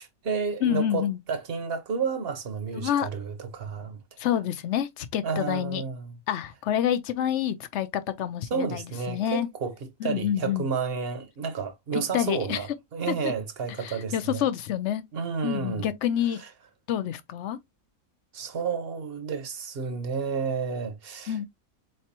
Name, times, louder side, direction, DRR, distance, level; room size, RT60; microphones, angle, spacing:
voice 1, 0.0-4.0 5.2-6.2 8.5-14.4 15.1-15.9 16.4-16.5 18.3-21.5, right 5 dB, 50° right, 1.0 m, -31 dB
voice 2, 0.6-1.2 2.8-3.1 4.2-5.8 6.3-9.5 10.0-10.7 11.9-12.6 13.1-13.3 13.8-15.0 15.4-16.4 16.9-17.6 21.3-21.5, left 10 dB, 65° left, 0.8 m, -28 dB
4.4 x 3.3 x 2.8 m
omnidirectional pair, 1.4 m